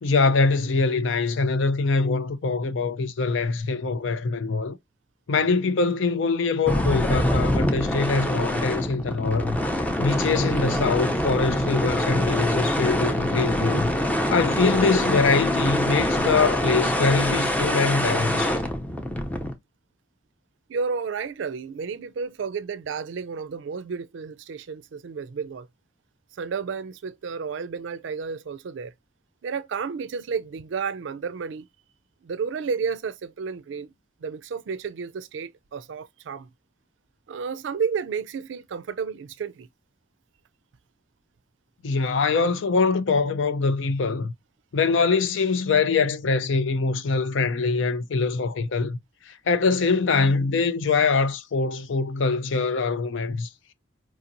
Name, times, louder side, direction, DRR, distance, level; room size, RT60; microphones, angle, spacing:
voice 1, 0.0-4.8 5.3-9.6 10.0-13.9 14.3-18.6 41.8-44.3 44.7-49.0 49.3-53.5, left 4 dB, 80° left, 0.5 m, -23 dB
sound 1, 6.7-19.5, equal, 10° left, 0.5 m, -25 dB
voice 2, 20.7-25.7 26.4-28.9 29.4-31.7 32.2-33.9 34.2-36.5 37.3-39.7, right 5 dB, 75° right, 0.4 m, -31 dB
4.8 x 2.8 x 2.5 m
head